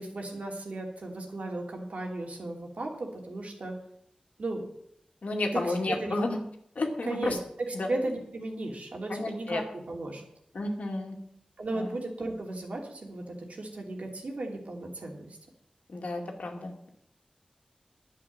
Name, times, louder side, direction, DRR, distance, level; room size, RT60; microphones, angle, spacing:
voice 1, 0.0-3.7 4.4-4.6 5.5-6.2 7.0-10.2 11.6-15.3, right 2 dB, 70° right, 1 dB, 2.8 m, -35 dB
voice 2, 5.2-6.4 6.8-7.4 7.7-7.9 9.1-9.6 10.5-11.2 11.7-11.9 15.9-16.9, left 2 dB, 75° left, 2 dB, 2.3 m, -31 dB
11.0 x 8.7 x 7.4 m, 0.72 s
wide cardioid pair, 85°, 2 cm